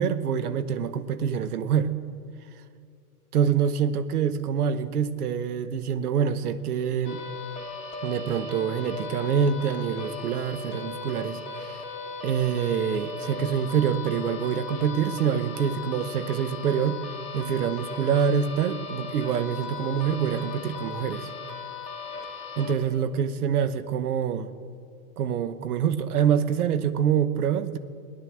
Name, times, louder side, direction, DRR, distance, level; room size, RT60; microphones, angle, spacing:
voice 1, 0.0-1.9 3.3-7.2 8.0-11.8 12.2-17.0 17.3-21.3 22.6-24.5 25.2-27.8, right 8 dB, 80° right, 12 dB, 1.1 m, -26 dB
sound 1, 7.0-22.7, left 4 dB, 15° left, 2.5 m, -37 dB
17.0 x 10.5 x 7.6 m, 2.4 s
hypercardioid pair, 125°, 44 cm